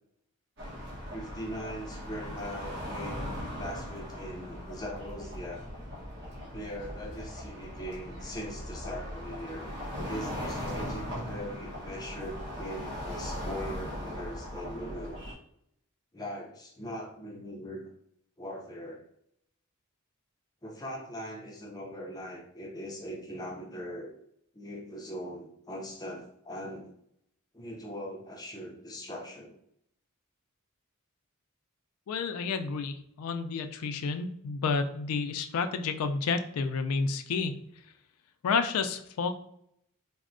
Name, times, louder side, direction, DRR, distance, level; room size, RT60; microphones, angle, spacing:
sound 1, 0.6-15.3, equal, 50° right, 1.0 m, -39 dB
voice 1, 1.1-5.7 6.5-9.7 10.1-15.2 16.1-17.9 18.4-19.0 20.6-24.1 24.5-26.9 27.5-29.5, equal, 15° left, -1 dB, 0.5 m, -40 dB
voice 2, 32.1-37.5 38.4-39.3, left 4 dB, 80° left, 9 dB, 0.3 m, -30 dB
4.2 x 2.0 x 2.4 m, 0.73 s
head